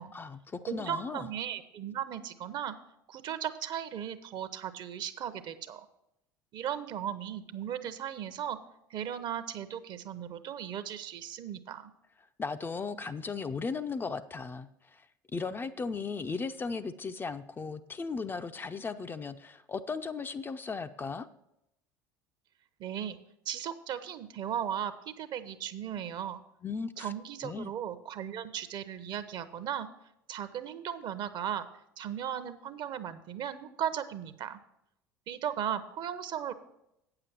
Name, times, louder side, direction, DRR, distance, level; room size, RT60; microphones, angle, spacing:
voice 1, 0.1-1.3 12.4-15.1 15.3-21.3 26.6-27.1 27.4-27.7, left 4 dB, 20° left, 9 dB, 0.4 m, -36 dB
voice 2, 0.7-2.7 3.1-5.9 6.5-8.6 8.9-11.9 22.8-23.2 23.5-26.4 27.0-29.9 30.3-31.7 32.0-34.6 35.3-36.5, right 9 dB, 45° right, 12 dB, 0.8 m, -36 dB
8.8 x 6.8 x 5.8 m, 0.82 s
figure-of-eight pair, 65°, 10 cm